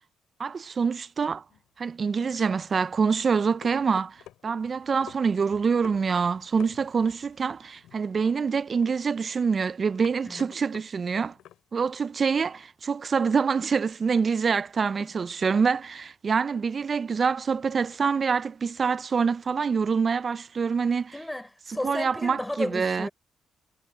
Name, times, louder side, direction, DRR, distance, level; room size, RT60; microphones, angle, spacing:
voice 1, 0.4-1.4 1.8-11.3 11.7-21.1 21.8-23.1, right 5 dB, 40° right, 0.4 m, -26 dB
sound 1, 1.5-11.9, left 12 dB, 85° left, 2.9 m, -51 dB
voice 2, 21.1-23.1, left 1 dB, 10° left, 3.8 m, -33 dB
cardioid pair, 90°, 0 cm